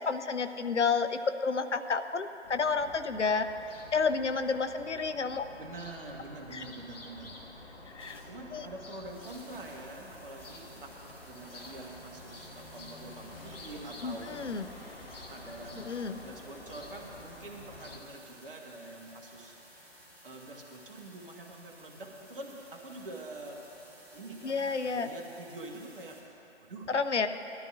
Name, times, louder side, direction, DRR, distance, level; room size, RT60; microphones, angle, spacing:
voice 1, 0.0-3.5 3.9-5.4 6.5-6.6 7.9-8.2 8.5-8.7 14.0-14.7 15.9-16.2 24.4-25.1 26.9-27.3, left 5 dB, 80° left, 9 dB, 0.7 m, -30 dB
sound 1, 2.4-18.0, left 2 dB, 55° left, 1.4 m, -49 dB
voice 2, 5.4-7.3 8.2-14.3 15.3-23.6 24.1-26.2 26.6-26.9, right 2 dB, 50° right, 1 dB, 1.5 m, -46 dB
sound 2, 8.0-26.2, right 1 dB, 5° right, 1.3 m, -56 dB
19.0 x 12.5 x 2.4 m, 2.9 s
figure-of-eight pair, 135°, 35 cm